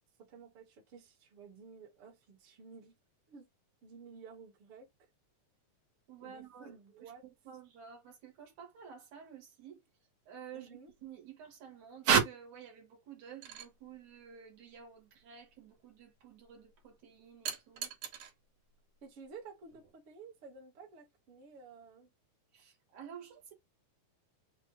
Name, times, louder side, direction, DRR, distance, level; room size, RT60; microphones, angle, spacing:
voice 1, 0.2-3.0 3.3-3.5 3.8-4.9 6.2-7.3 10.5-10.9 19.0-22.1, right 5 dB, 50° right, 2.1 m, -53 dB
voice 2, 6.1-6.7 7.0-7.1 7.5-9.8 10.3-10.7 11.0-17.9 22.5-23.5, right 6 dB, 65° right, 2.6 m, -39 dB
sound 1, 13.4-13.7 17.5-18.3 19.7-19.9, right 10 dB, 90° right, 2.8 m, -42 dB
5.7 x 2.5 x 3.1 m
omnidirectional pair, 3.6 m